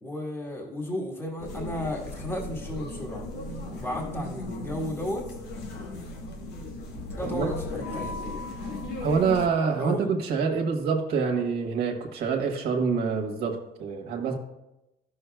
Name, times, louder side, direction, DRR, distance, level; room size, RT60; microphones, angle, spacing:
voice 1, 0.0-3.3 3.7-5.3 7.2-8.4 9.8-10.1, left 1 dB, 15° left, -2 dB, 1.5 m, -34 dB
sound 1, 1.4-9.5, left 2 dB, 85° left, 1.2 m, -36 dB
voice 2, 7.2-7.5 9.0-14.3, right 5 dB, 70° right, 0 dB, 1.3 m, -26 dB
13.0 x 6.4 x 2.3 m, 0.91 s
cardioid pair, 110°, 17 cm